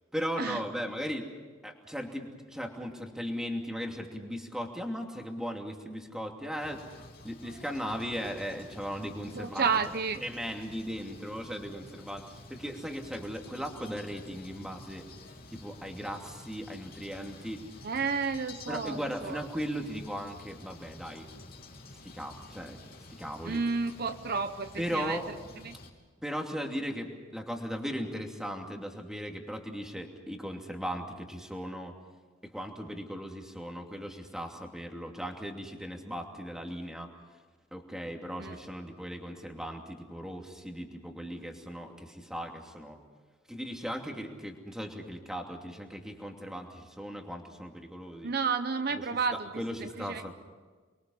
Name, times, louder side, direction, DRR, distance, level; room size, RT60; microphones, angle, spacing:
voice 1, 0.1-1.3 1.6-6.8 7.2-9.7 10.2-15.1 15.5-17.6 18.7-21.3 22.1-22.8 23.2-23.6 24.8-25.3 26.2-31.9 32.4-37.1 37.7-43.0 43.5-48.3 48.9-49.0 49.6-50.3, equal, 5° right, 2 dB, 2.7 m, -37 dB
sound 1, 6.6-25.9, left 2 dB, 50° left, 3.2 m, -50 dB
voice 2, 9.3-10.2 17.8-19.5 23.4-25.4 25.6-25.8 38.4-38.6 48.2-50.3, right 5 dB, 55° right, 9 dB, 0.8 m, -31 dB
29.0 x 23.0 x 5.6 m, 1.4 s
head